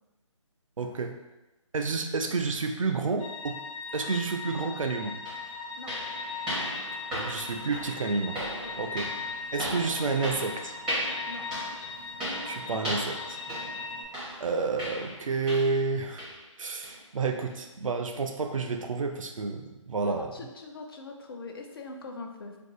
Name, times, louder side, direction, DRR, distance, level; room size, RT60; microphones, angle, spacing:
voice 1, 0.8-1.2 1.7-3.6 3.9-5.2 7.1-8.4 8.8-9.1 9.5-10.7 12.5-13.4 14.4-16.3 16.6-20.3, right 4 dB, 80° right, 5 dB, 0.5 m, -30 dB
sound 1, 3.2-14.0, left 4 dB, 80° left, 0.8 m, -39 dB
sound 2, 4.7-4.8 5.3-15.9 16.2-16.5 16.8-17.0 17.5-17.6 18.1-18.2, equal, 5° right, 0.6 m, -37 dB
voice 2, 20.0-22.6, left 3 dB, 45° left, 3 dB, 0.4 m, -42 dB
2.6 x 2.4 x 3.6 m, 1.0 s
figure-of-eight pair, 160°, 17 cm